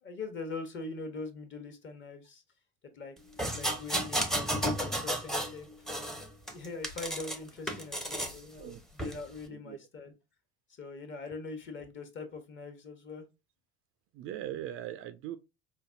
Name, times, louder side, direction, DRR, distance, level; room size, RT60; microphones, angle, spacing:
voice 1, 0.0-2.4 2.9-3.2 3.5-5.7 6.5-10.1 10.7-13.2, left 3 dB, 30° left, 1.1 m, -42 dB
sound 1, 3.4-5.5 5.9-7.4 7.7-8.4 9.0-9.2, equal, ahead, 0.7 m, -32 dB
voice 2, 14.1-15.4, right 12 dB, 35° right, 0.4 m, -40 dB
5.1 x 2.1 x 2.5 m
figure-of-eight pair, 70°, 36 cm